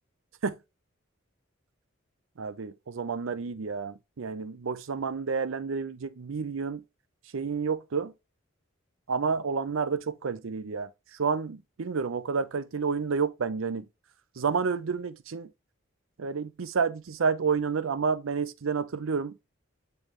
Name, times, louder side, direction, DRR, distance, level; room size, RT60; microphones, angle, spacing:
voice 1, 2.4-6.8 7.3-8.1 9.1-10.9 11.2-13.8 14.4-15.5 16.2-19.3, right 5 dB, 75° right, 0.5 m, -30 dB
9.0 x 3.4 x 3.1 m
head